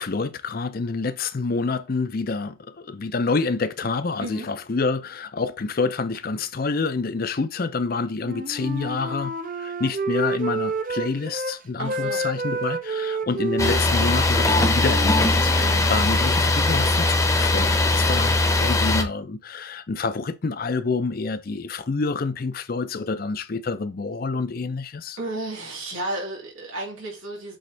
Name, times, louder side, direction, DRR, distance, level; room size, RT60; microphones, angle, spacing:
voice 1, 0.0-25.2, left 4 dB, 45° left, 0.5 m, -27 dB
Wind instrument woodwind instrument, 8.2-11.5 11.9-15.7, right 3 dB, 40° right, 0.6 m, -29 dB
voice 2, 11.8-12.2 15.6-15.9 25.2-27.6, right 2 dB, 90° right, 2.8 m, -32 dB
sound 1, 13.6-19.0, left 2 dB, 15° left, 0.8 m, -20 dB
7.8 x 3.6 x 3.3 m
head